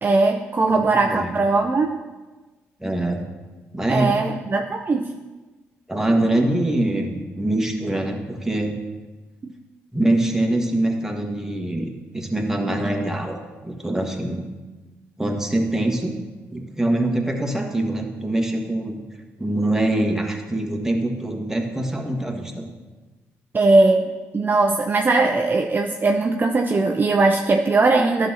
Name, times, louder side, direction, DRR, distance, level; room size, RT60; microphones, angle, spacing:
voice 1, 0.0-2.0 3.9-5.1 9.4-9.5 23.5-24.1 24.3-28.3, right 3 dB, 35° right, 3 dB, 0.5 m, -19 dB
voice 2, 0.7-1.3 2.8-3.2 3.7-4.1 5.9-8.8 9.9-14.5 15.2-16.1 16.5-19.0 19.4-22.7, right 1 dB, 10° right, 1 dB, 1.4 m, -24 dB
11.5 x 6.1 x 2.8 m, 1.2 s
supercardioid pair, 55°, 6 cm